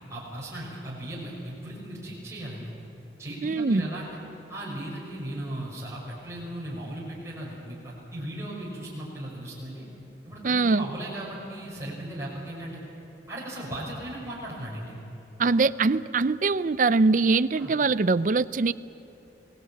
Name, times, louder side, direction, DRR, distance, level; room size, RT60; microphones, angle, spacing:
voice 1, 0.1-2.7 3.2-4.2 4.5-9.9 10.2-12.8 13.3-15.0 17.5-17.7, right 1 dB, 15° right, -5 dB, 5.8 m, -37 dB
voice 2, 3.4-3.9 10.4-10.8 15.4-18.7, right 3 dB, 45° right, 15 dB, 0.5 m, -22 dB
26.0 x 18.5 x 8.6 m, 3.0 s
head